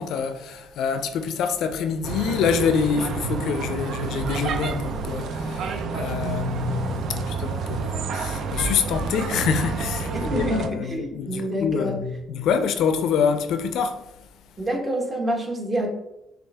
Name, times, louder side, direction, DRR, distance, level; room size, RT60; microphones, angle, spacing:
voice 1, 0.0-14.1, left 6 dB, 70° left, 0.4 m, -26 dB
sound 1, 2.0-10.7, right 4 dB, 65° right, 0.4 m, -29 dB
voice 2, 10.1-12.0 14.6-15.9, equal, 30° right, 1.3 m, -27 dB
6.3 x 2.4 x 3.5 m
supercardioid pair, 75°, 0 cm